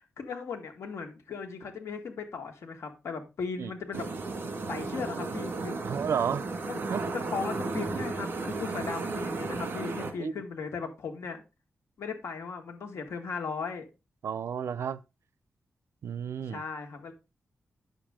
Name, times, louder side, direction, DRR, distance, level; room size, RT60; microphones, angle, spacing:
voice 1, 0.2-4.1 4.7-5.8 6.7-11.4 12.0-13.8 16.5-17.1, left 5 dB, 85° left, 1.9 m, -37 dB
sound 1, 3.9-10.1, right 3 dB, 50° right, 1.9 m, -34 dB
voice 2, 5.8-6.4 6.9-7.0 10.2-10.3 14.2-15.0 16.0-16.6, right 7 dB, 80° right, 0.6 m, -31 dB
9.3 x 6.8 x 3.7 m
wide cardioid pair, 150°, 5 cm